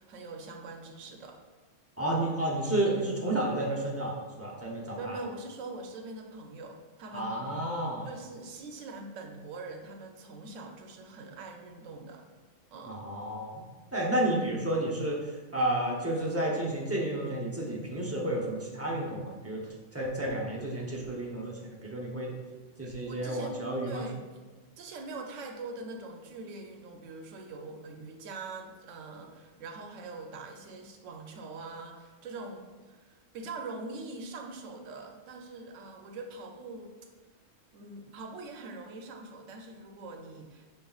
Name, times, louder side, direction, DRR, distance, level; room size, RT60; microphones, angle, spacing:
voice 1, 0.0-1.4 4.9-7.3 8.0-12.3 12.7-13.0 22.8-24.4 24.8-36.9 37.7-40.7, right 3 dB, 85° right, 2 dB, 1.0 m, -43 dB
voice 2, 2.0-5.2 7.1-8.1 12.9-13.6 13.9-19.6 19.9-22.3 22.8-24.0, right 1 dB, 15° right, -4 dB, 0.5 m, -31 dB
5.4 x 3.8 x 2.3 m, 1.3 s
omnidirectional pair, 1.3 m